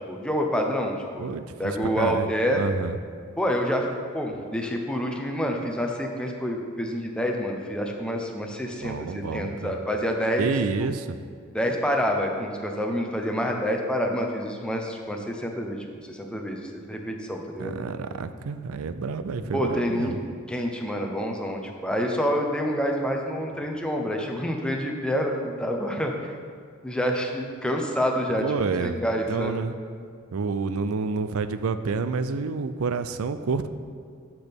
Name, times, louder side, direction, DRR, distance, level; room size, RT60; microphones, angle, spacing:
voice 1, 0.1-1.3 1.6-2.6 3.4-3.9 4.1-10.5 11.5-17.8 19.5-20.1 20.5-26.3 26.8-28.4 28.8-29.6, equal, 5° left, 1 dB, 0.8 m, -27 dB
voice 2, 1.2-2.3 2.5-3.0 8.8-9.8 10.4-11.2 17.6-20.2 28.4-29.0 29.3-29.8 30.3-33.7, right 4 dB, 85° right, 11 dB, 0.5 m, -29 dB
12.5 x 6.0 x 3.5 m, 2.1 s
head